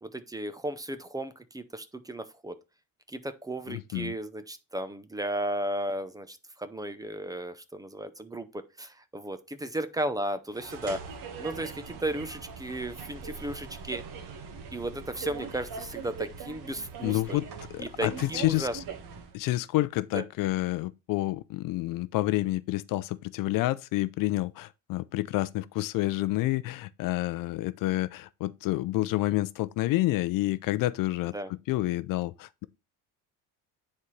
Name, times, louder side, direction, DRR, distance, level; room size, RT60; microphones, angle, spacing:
voice 1, 0.0-2.5 3.1-11.0 11.4-14.0 14.7-17.4 17.8-18.7 20.1-20.2 31.3-31.5, right 1 dB, 10° right, 0.6 m, -35 dB
voice 2, 3.7-4.1 17.0-17.4 17.7-18.7 19.3-31.3 31.7-32.7, left 17 dB, 60° left, 0.5 m, -29 dB
sound 1, 10.5-19.4, right 5 dB, 60° right, 1.6 m, -41 dB
9.6 x 4.2 x 3.2 m
cardioid pair, 140°, 38 cm